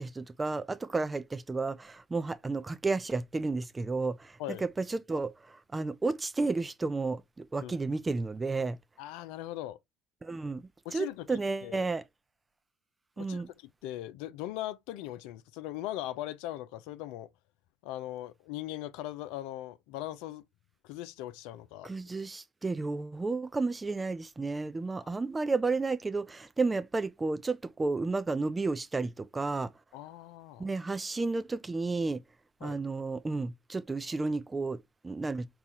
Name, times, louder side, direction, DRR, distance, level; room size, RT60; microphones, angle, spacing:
voice 1, 0.0-8.8 10.2-12.0 13.2-13.5 21.8-29.7 30.6-32.2 32.6-35.5, right 3 dB, 20° right, 0.5 m, -32 dB
voice 2, 9.0-9.8 10.9-11.9 13.2-13.4 13.8-17.3 17.8-20.4 20.8-21.9 29.9-30.7 32.6-32.8, left 14 dB, 70° left, 0.4 m, -39 dB
4.1 x 2.3 x 4.1 m
hypercardioid pair, 60°, 0 cm